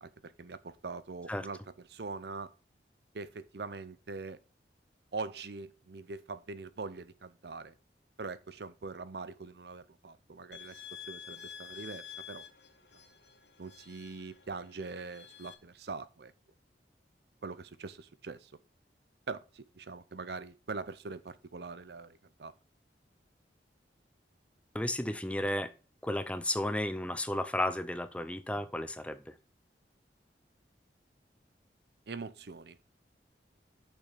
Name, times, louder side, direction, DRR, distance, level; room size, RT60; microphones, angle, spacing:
voice 1, 0.0-2.5 3.1-4.4 5.1-7.8 8.2-10.8 11.1-12.4 13.6-16.3 17.4-18.5 19.3-22.5 32.1-32.8, right 4 dB, 70° right, 0.6 m, -43 dB
sound 1, 10.5-15.5, left 8 dB, 75° left, 1.5 m, -49 dB
voice 2, 24.7-25.7 26.0-29.3, left 1 dB, 5° left, 0.6 m, -33 dB
6.8 x 5.6 x 6.7 m
head